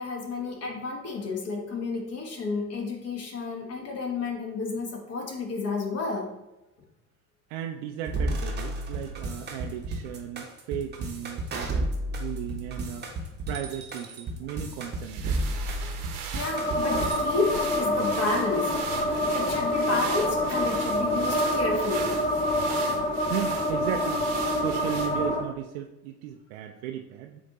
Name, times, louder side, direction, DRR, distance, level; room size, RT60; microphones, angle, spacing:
voice 1, 0.0-6.3 16.3-18.8 19.1-22.2, left 3 dB, 30° left, 0 dB, 1.3 m, -31 dB
voice 2, 7.5-15.7 23.3-24.2 24.5-27.4, right 10 dB, 50° right, 3 dB, 0.5 m, -36 dB
sound 1, 8.1-17.2, right 1 dB, 20° right, 1.0 m, -32 dB
sound 2, 14.8-25.4, right 6 dB, 70° right, 0.9 m, -40 dB
sound 3, 16.5-25.4, left 1 dB, 15° left, 0.5 m, -27 dB
7.2 x 2.6 x 2.8 m, 0.94 s
hypercardioid pair, 75°, 47 cm